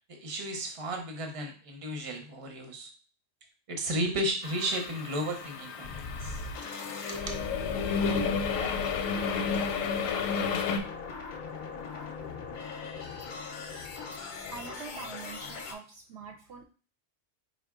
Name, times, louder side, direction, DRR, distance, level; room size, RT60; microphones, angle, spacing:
voice 1, 0.1-2.9 3.7-6.4 7.1-7.4, right 1 dB, 35° right, 4 dB, 0.7 m, -34 dB
sound 1, 4.4-10.8, left 5 dB, 90° left, 1.0 m, -32 dB
sound 2, 5.8-15.7, left 3 dB, 55° left, 0.6 m, -40 dB
voice 2, 14.3-16.6, right 5 dB, 65° right, 3 dB, 0.8 m, -44 dB
4.8 x 2.2 x 3.6 m, 0.38 s
omnidirectional pair, 1.3 m